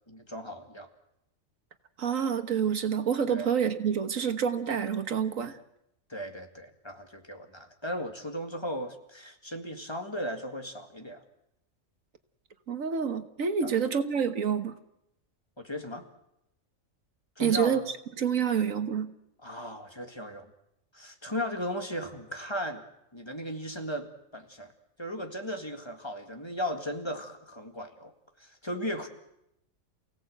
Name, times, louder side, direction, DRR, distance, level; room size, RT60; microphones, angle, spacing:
voice 1, 0.1-0.9 3.3-3.5 6.1-11.2 13.6-13.7 15.6-16.0 17.4-17.8 19.4-20.5 20.9-22.8 23.1-24.7 25.0-29.1, equal, 20° left, 4 dB, 2.0 m, -36 dB
voice 2, 2.0-5.6 12.7-14.7 17.4-17.8 18.2-19.1, right 7 dB, 75° right, 9 dB, 1.7 m, -27 dB
28.5 x 17.5 x 7.9 m, 0.83 s
omnidirectional pair, 1.4 m